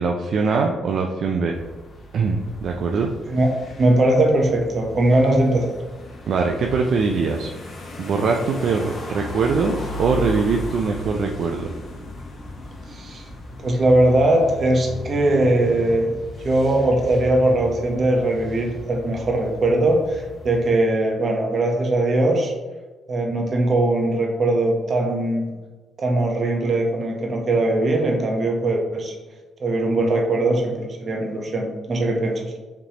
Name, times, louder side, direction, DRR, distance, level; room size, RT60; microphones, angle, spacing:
voice 1, 0.0-1.6 2.1-3.1 6.3-7.5 8.0-11.7, right 4 dB, 65° right, 2 dB, 0.4 m, -22 dB
sound 1, 1.5-20.7, left 1 dB, 45° left, 1.0 m, -36 dB
voice 2, 3.3-5.7 12.9-13.3 13.6-22.5 23.1-25.5 26.0-29.1 29.6-32.5, right 1 dB, 45° right, 1 dB, 0.9 m, -20 dB
5.1 x 3.2 x 2.9 m, 1.3 s
cardioid pair, 90°, 0 cm